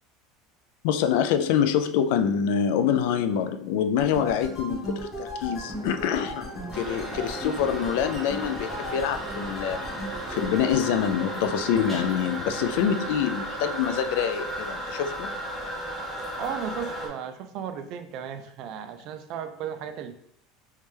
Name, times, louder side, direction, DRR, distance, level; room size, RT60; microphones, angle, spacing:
voice 1, 0.8-9.9 10.3-15.3, left 8 dB, 70° left, 8 dB, 0.3 m, -26 dB
sound 1, 4.0-10.8, equal, 20° left, 1.1 m, -37 dB
sound 2, 5.4-12.9, right 1 dB, 75° right, 1.0 m, -43 dB
Toilet flush, 6.7-17.1, right 1 dB, 5° left, 0.7 m, -35 dB
voice 2, 16.4-20.1, right 8 dB, 45° right, 10 dB, 0.3 m, -35 dB
3.2 x 3.1 x 3.3 m, 0.70 s
cardioid pair, 165°, 0 cm